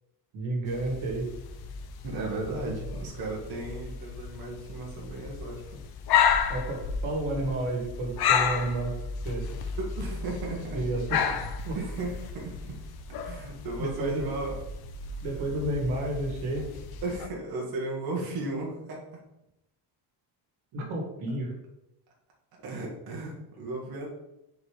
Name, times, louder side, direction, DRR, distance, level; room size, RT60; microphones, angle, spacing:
voice 1, 0.3-1.3 6.5-8.9 9.2-9.5 10.7-11.3 11.7-11.8 13.8-14.3 15.2-16.7 20.7-21.6, right 1 dB, 80° right, 1 dB, 2.0 m, -31 dB
sound 1, 0.7-17.3, left 7 dB, 50° left, 0.7 m, -32 dB
voice 2, 2.0-5.8 9.8-10.8 11.2-11.4 11.7-12.8 13.2-14.6 17.0-19.1 22.6-24.1, right 2 dB, 50° right, -2 dB, 1.6 m, -35 dB
5.0 x 4.8 x 5.0 m, 0.87 s
cardioid pair, 165°, 47 cm